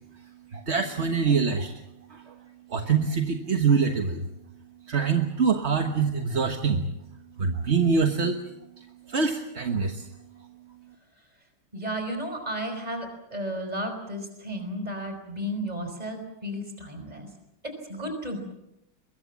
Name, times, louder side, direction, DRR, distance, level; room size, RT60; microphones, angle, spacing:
voice 1, 0.5-1.8 2.1-2.3 2.7-4.3 4.9-6.9 7.4-8.4 8.8-10.1, right 5 dB, 35° right, 5 dB, 1.3 m, -25 dB
voice 2, 11.7-17.3 17.6-18.4, equal, 15° right, 6 dB, 5.1 m, -33 dB
23.0 x 22.0 x 7.4 m, 0.85 s
omnidirectional pair, 2.4 m